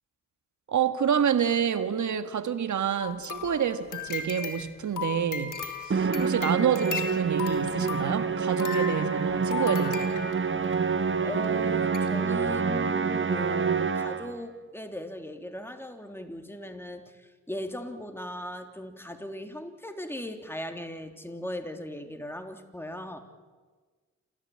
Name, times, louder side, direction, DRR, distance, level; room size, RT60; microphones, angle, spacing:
voice 1, 0.7-5.6 5.8-10.1, right 8 dB, 60° right, 1.8 m, -28 dB
sound 1, 3.0-10.8 11.4-11.5 11.9-12.1 12.5-12.6, left 6 dB, 65° left, 3.2 m, -37 dB
Musical instrument, 5.9-14.4, right 5 dB, 35° right, 1.3 m, -27 dB
voice 2, 11.2-23.2, left 1 dB, 5° left, 3.4 m, -38 dB
28.5 x 13.5 x 8.8 m
hypercardioid pair, 40°, 33 cm